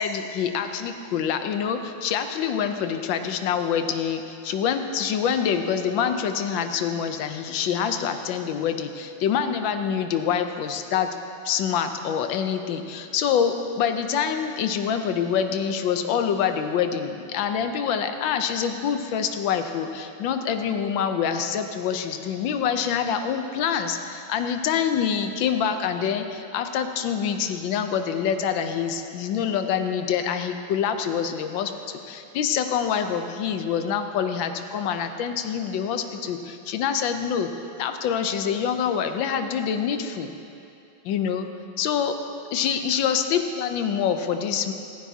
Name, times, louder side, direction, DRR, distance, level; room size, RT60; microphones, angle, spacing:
voice 1, 0.0-11.1 11.4-37.5 37.8-40.3 41.0-41.5 41.8-42.2 42.5-44.7, left 7 dB, 70° left, 7 dB, 1.3 m, -26 dB
15.0 x 15.0 x 2.8 m, 2.7 s
omnidirectional pair, 2.3 m